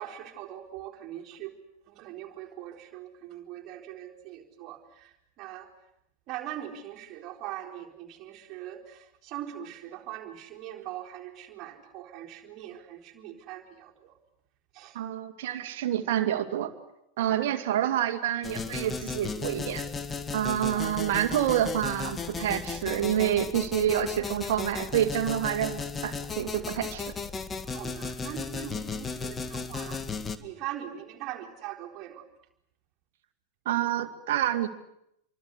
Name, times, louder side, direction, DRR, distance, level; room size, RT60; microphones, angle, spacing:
voice 1, 0.0-1.5 1.9-5.7 6.3-14.1 14.7-15.0 17.3-17.4 20.6-20.9 27.7-30.0 30.4-32.2, right 12 dB, 35° right, 1 dB, 4.1 m, -41 dB
voice 2, 14.9-16.7 17.2-19.8 20.3-27.1 33.7-34.7, right 11 dB, 55° right, 7 dB, 2.5 m, -28 dB
sound 1, 18.4-30.4, left 4 dB, 15° left, 1.9 m, -35 dB
28.0 x 24.0 x 8.3 m, 0.79 s
figure-of-eight pair, 90°, 0 cm